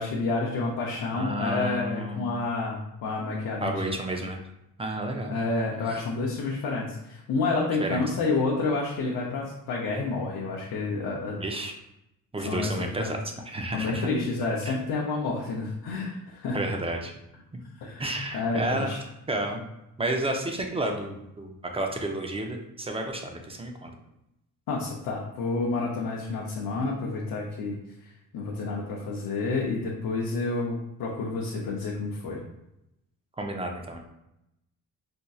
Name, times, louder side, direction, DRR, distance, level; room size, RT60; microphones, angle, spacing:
voice 1, 0.0-4.0 5.3-11.4 12.5-13.2 13.7-16.6 17.8-19.0 24.7-27.8 28.3-32.4, left 3 dB, 80° left, -2 dB, 0.7 m, -29 dB
voice 2, 1.1-2.4 3.6-4.4 4.8-5.4 7.8-8.0 11.3-11.7 12.3-13.2 13.5-14.1 16.5-17.1 18.0-18.9 19.3-19.6 20.0-23.9 33.4-34.0, right 1 dB, 15° right, 3 dB, 0.5 m, -31 dB
4.3 x 2.6 x 2.3 m, 0.86 s
cardioid pair, 95°, 36 cm